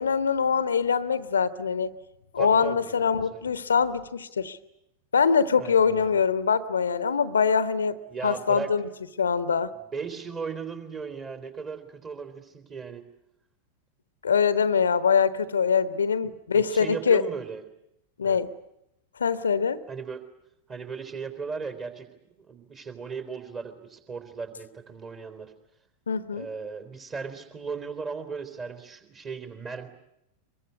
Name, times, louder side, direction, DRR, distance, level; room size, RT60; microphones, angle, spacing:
voice 1, 0.0-1.9 2.3-4.6 5.1-8.0 8.2-8.8 9.2-9.7 14.2-17.2 18.2-18.5 19.2-19.8 26.1-26.5, left 6 dB, 70° left, 15 dB, 1.1 m, -23 dB
voice 2, 2.4-3.5 5.6-6.2 8.1-8.7 9.7-13.0 16.5-17.6 18.2-18.4 19.9-20.3 20.7-25.5 26.3-29.9, right 5 dB, 25° right, 8 dB, 3.6 m, -37 dB
24.0 x 22.5 x 9.7 m, 0.82 s
figure-of-eight pair, 90°, 0 cm